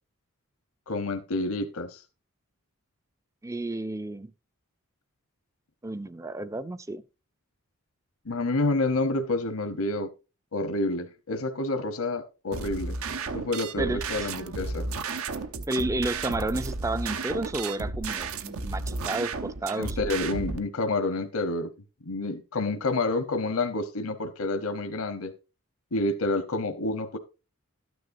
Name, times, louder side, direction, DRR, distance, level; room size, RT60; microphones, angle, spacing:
voice 1, 0.9-2.0 8.2-10.1 10.5-13.0 13.3-14.9 19.8-21.7 22.1-25.3 25.9-27.2, left 2 dB, 75° left, 1.0 m, -28 dB
voice 2, 3.4-4.3 5.8-7.0 13.8-14.3 15.7-20.2, right 2 dB, 15° right, 0.4 m, -31 dB
sound 1, 12.5-20.6, right 3 dB, 75° right, 0.9 m, -33 dB
12.5 x 9.5 x 2.6 m
head